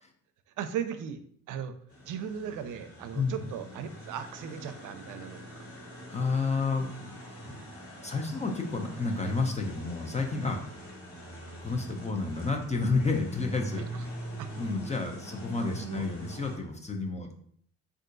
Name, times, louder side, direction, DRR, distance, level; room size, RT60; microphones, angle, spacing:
voice 1, 0.6-1.7 2.0-5.6 14.4-14.5 15.8-16.1, right 8 dB, 65° right, 10 dB, 0.5 m, -37 dB
sound 1, 1.9-16.6, equal, 85° left, 1.4 m, -44 dB
voice 2, 6.1-7.6 8.0-10.6 11.6-13.9 14.5-17.3, left 3 dB, 20° left, 3 dB, 0.6 m, -30 dB
3.5 x 2.5 x 2.5 m, 0.62 s
supercardioid pair, 55°, 33 cm